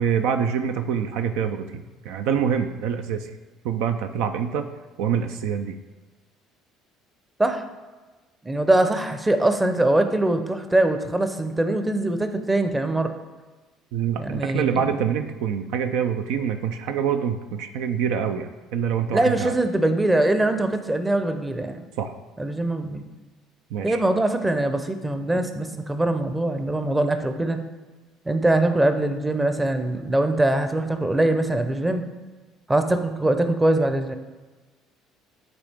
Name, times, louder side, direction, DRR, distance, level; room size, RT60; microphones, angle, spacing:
voice 1, 0.0-3.4 3.6-4.7 5.0-5.8 13.9-19.6 22.0-22.1 23.7-24.0, right 7 dB, 70° right, 8 dB, 0.3 m, -25 dB
voice 2, 8.4-13.2 14.2-14.8 19.1-21.8 22.4-23.0 23.8-27.6 28.3-32.0 32.7-34.1, right 1 dB, 15° right, 8 dB, 0.7 m, -22 dB
8.8 x 3.9 x 3.5 m, 1.3 s
hypercardioid pair, 60°, 0 cm